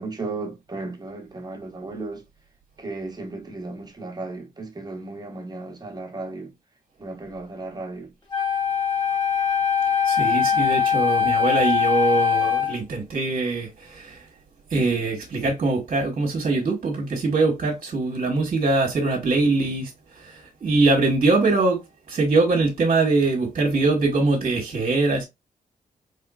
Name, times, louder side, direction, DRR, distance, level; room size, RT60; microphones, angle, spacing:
voice 1, 0.0-2.2 2.8-6.5 7.0-8.1, right 3 dB, 25° right, 1.2 m, -35 dB
Wind instrument woodwind instrument, 8.3-12.8, left 7 dB, 30° left, 1.8 m, -21 dB
voice 2, 10.0-14.2 14.7-21.8 22.1-25.3, right 3 dB, 50° right, 1.3 m, -22 dB
3.6 x 3.3 x 2.3 m
cardioid pair, 85°, 16 cm